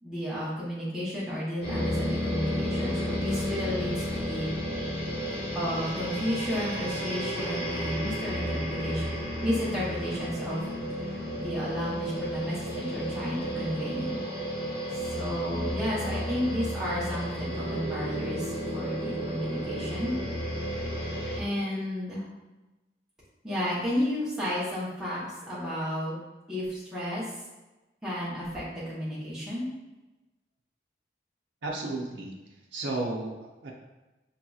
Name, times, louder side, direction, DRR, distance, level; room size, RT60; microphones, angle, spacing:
voice 1, 0.0-4.5 5.5-9.1 9.4-10.6 11.0-14.2 15.1-20.1 21.3-22.2 23.4-26.2 26.5-27.4 28.0-29.6, equal, 5° right, -9 dB, 0.9 m, -32 dB
sound 1, 1.6-21.4, equal, 65° left, 1.4 m, -32 dB
voice 2, 31.6-32.4 32.7-33.7, right 2 dB, 85° right, -1 dB, 0.5 m, -33 dB
5.2 x 2.8 x 2.3 m, 1.1 s
head